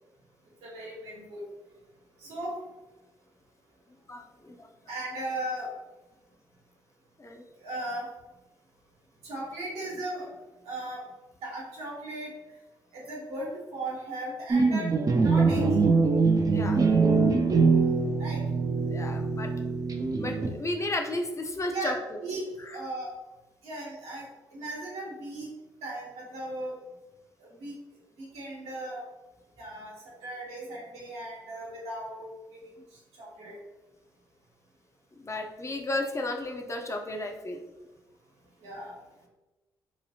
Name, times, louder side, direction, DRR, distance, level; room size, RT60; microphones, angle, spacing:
voice 1, 0.6-1.4 2.2-2.6 4.9-5.7 7.6-8.1 9.2-10.3 10.6-11.0 11.4-12.3 12.9-15.8 18.2-18.4 21.7-23.1 23.6-24.2 24.5-25.5 25.8-26.8 27.6-27.7 28.2-29.0 29.6-29.9 30.2-32.7 33.2-33.6 38.6-39.0, right 1 dB, 75° right, -5 dB, 1.1 m, -37 dB
voice 2, 4.1-4.7 7.2-7.4 16.5-16.8 18.9-19.5 20.2-21.9 22.7-22.8 35.2-37.6, left 2 dB, 30° left, 3 dB, 0.6 m, -33 dB
sound 1, 14.5-20.8, right 4 dB, 35° right, 0.4 m, -23 dB
3.0 x 2.3 x 2.7 m, 1.1 s
hypercardioid pair, 45°, 11 cm